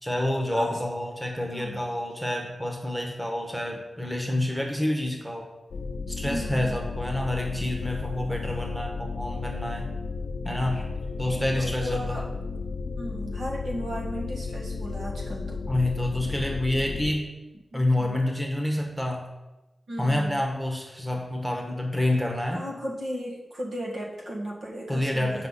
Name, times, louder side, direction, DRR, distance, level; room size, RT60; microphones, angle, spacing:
voice 1, 0.0-5.5 6.1-9.9 10.4-10.9 11.2-12.2 15.7-17.3 17.7-19.3 20.0-22.6 24.9-25.5, left 1 dB, 5° right, 1 dB, 1.1 m, -28 dB
voice 2, 1.5-1.9 6.2-6.9 11.2-12.3 13.0-15.6 17.7-18.2 19.9-20.4 22.5-25.5, equal, 85° right, -3 dB, 1.6 m, -36 dB
sound 1, 5.7-17.1, left 4 dB, 90° left, 0.6 m, -33 dB
8.0 x 5.5 x 4.1 m, 1.0 s
wide cardioid pair, 125°, 0 cm